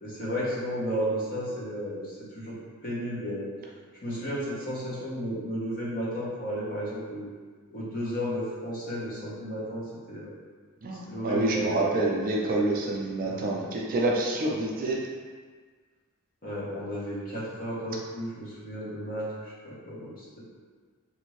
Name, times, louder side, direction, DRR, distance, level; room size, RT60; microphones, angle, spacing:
voice 1, 0.0-2.5 2.8-3.5 4.0-7.3 7.7-10.3 11.1-11.9 13.2-13.6 16.4-20.4, equal, 40° left, -7 dB, 0.9 m, -33 dB
voice 2, 10.8-15.0, right 2 dB, 40° right, -2 dB, 0.4 m, -27 dB
2.6 x 2.5 x 3.1 m, 1.6 s
head